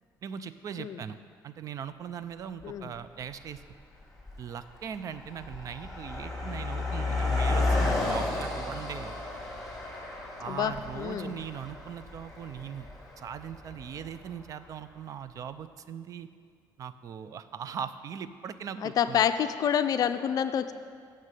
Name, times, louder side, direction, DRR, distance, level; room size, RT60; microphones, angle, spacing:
voice 1, 0.2-1.2 1.4-3.6 4.4-9.1 10.4-12.9 13.2-16.3 16.8-19.3, right 8 dB, 45° right, 13 dB, 0.4 m, -40 dB
Car passing by, 2.6-2.7 3.5-3.7 4.0-14.4, left 2 dB, ahead, 2.4 m, -32 dB
voice 2, 10.5-11.3 18.8-20.7, left 9 dB, 50° left, 10 dB, 0.4 m, -28 dB
6.8 x 6.2 x 7.6 m, 2.1 s
cardioid pair, 115°, 8 cm